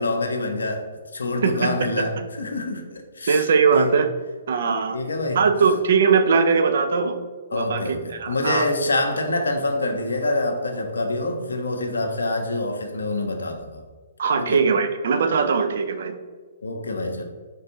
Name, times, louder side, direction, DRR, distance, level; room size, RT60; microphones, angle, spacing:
voice 1, 0.0-4.0 4.9-5.4 7.5-13.8 14.4-14.6 16.6-17.3, left 2 dB, 70° left, 4 dB, 0.6 m, -26 dB
voice 2, 1.4-1.7 3.3-4.1 4.5-5.0 5.4-7.2 7.5-7.8 8.1-8.7 14.2-16.1, right 5 dB, 55° right, 8 dB, 0.4 m, -20 dB
4.5 x 3.3 x 2.8 m, 1.5 s
figure-of-eight pair, 120°, 0 cm